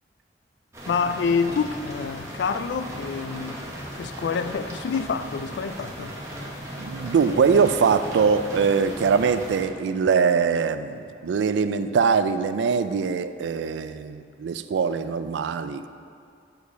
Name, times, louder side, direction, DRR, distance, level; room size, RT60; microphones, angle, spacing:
sound 1, 0.7-9.6, equal, 15° right, 1.1 m, -37 dB
voice 1, 0.9-3.6 3.9-6.1, left 5 dB, 75° left, 10 dB, 0.3 m, -27 dB
voice 2, 6.8-15.9, right 5 dB, 90° right, 11 dB, 0.3 m, -22 dB
6.5 x 4.7 x 5.6 m, 2.4 s
head